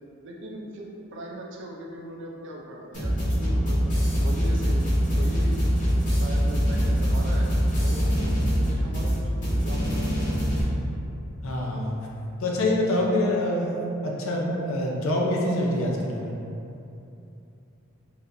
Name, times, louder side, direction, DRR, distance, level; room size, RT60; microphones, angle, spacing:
voice 1, 0.2-3.9 4.2-5.8 6.1-7.5 7.8-10.3, right 1 dB, 55° right, -1 dB, 0.5 m, -40 dB
sound 1, 2.9-10.6, equal, 35° left, 1.5 m, -23 dB
voice 2, 11.4-12.0 12.4-16.4, left 1 dB, 70° left, -2 dB, 0.6 m, -25 dB
4.1 x 2.8 x 2.6 m, 2.8 s
head